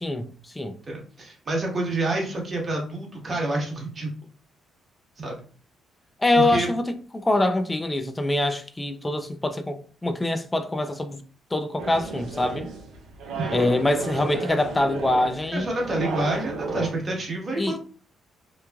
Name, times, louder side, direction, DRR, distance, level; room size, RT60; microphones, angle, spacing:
voice 1, 0.0-0.8 6.2-11.2 11.5-12.7 13.5-15.7 17.6-17.8, left 2 dB, 15° left, 0.4 m, -24 dB
voice 2, 0.9-4.1 5.2-5.4 6.3-6.7 13.3-13.6 15.5-17.8, right 2 dB, 40° right, 1.2 m, -28 dB
sound 1, 11.8-16.9, right 4 dB, 75° right, 0.6 m, -33 dB
3.0 x 2.3 x 2.3 m
cardioid pair, 90°, 0 cm